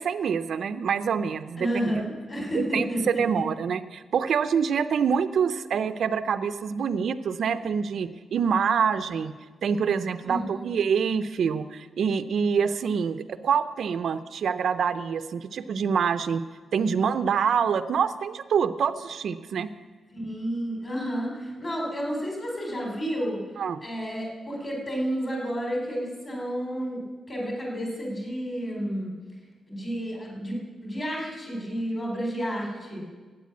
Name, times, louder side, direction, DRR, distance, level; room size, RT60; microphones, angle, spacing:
voice 1, 0.0-1.7 1.9-2.0 2.5-9.3 9.6-16.4 16.7-19.7 23.6-23.8, right 6 dB, 60° right, 11 dB, 0.5 m, -26 dB
voice 2, 1.6-3.4 10.2-10.4 20.1-23.4 23.8-27.0 27.3-29.1 29.7-33.0, equal, 30° left, -1 dB, 4.0 m, -31 dB
12.5 x 8.9 x 8.4 m, 1.4 s
wide cardioid pair, 160°, 0 cm